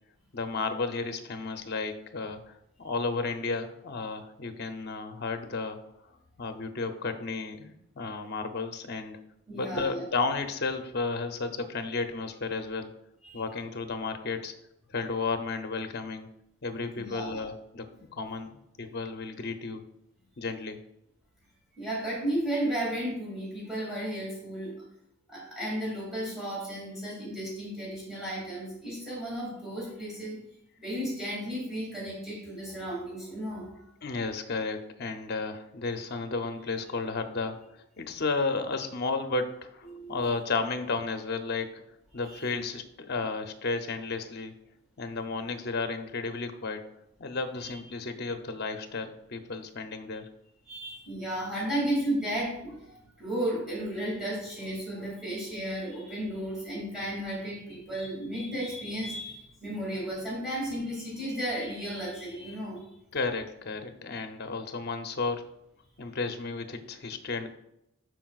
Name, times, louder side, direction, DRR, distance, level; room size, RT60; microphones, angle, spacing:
voice 1, 0.3-5.8 6.4-9.2 9.5-12.9 13.3-14.5 14.9-16.3 16.6-18.5 18.8-19.8 20.4-20.8 34.0-37.6 38.0-41.8 42.1-44.5 45.0-46.8 47.2-50.3 63.1-65.4 66.0-67.5, left 3 dB, 50° left, 7 dB, 0.6 m, -33 dB
voice 2, 9.5-10.1 13.2-13.4 17.0-17.4 21.8-24.8 25.3-30.4 30.8-33.9 39.9-40.2 42.3-42.5 47.6-47.8 50.6-62.8, right 1 dB, ahead, -5 dB, 2.5 m, -34 dB
12.0 x 4.7 x 2.4 m, 0.82 s
head